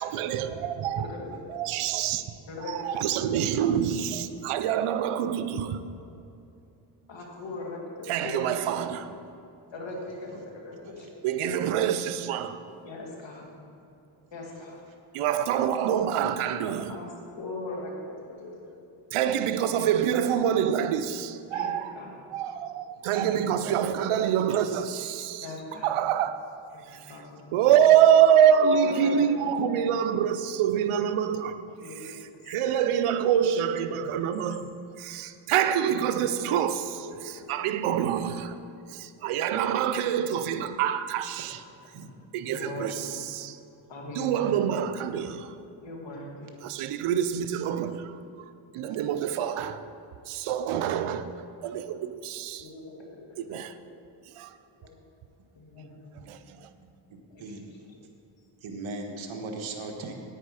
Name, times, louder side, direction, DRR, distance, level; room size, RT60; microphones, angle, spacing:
voice 1, 0.0-1.1 1.5-2.2 2.7-6.0 8.1-9.1 11.2-12.6 15.1-17.0 19.1-22.0 22.3-25.5 25.8-26.4 26.9-27.2 27.5-31.6 31.9-38.6 38.9-41.6 42.3-43.6 44.1-45.5 46.6-49.8 50.3-51.3 51.6-52.7 53.4-53.7 54.3-54.6 56.3-56.7, right 9 dB, 85° right, 11 dB, 0.7 m, -26 dB
voice 2, 1.0-1.3 2.5-3.3 5.3-5.4 7.1-8.5 9.7-11.6 12.8-13.5 14.3-14.8 16.9-17.1 17.3-18.8 21.5-22.1 23.1-23.4 25.4-25.9 26.7-27.4 28.6-29.9 31.8-32.1 33.7-34.0 35.8-36.0 36.9-37.5 42.5-43.1 43.9-44.5 45.8-46.5 48.9-49.1 52.6-53.4 54.8-55.0 55.5-56.0 57.3-57.4, left 2 dB, 60° left, -1 dB, 2.5 m, -40 dB
voice 3, 42.6-43.1 56.2-56.9 57.4-57.7 58.6-60.1, right 3 dB, 70° right, 2 dB, 1.5 m, -40 dB
10.0 x 9.0 x 4.9 m, 2.7 s
cardioid pair, 70°, 49 cm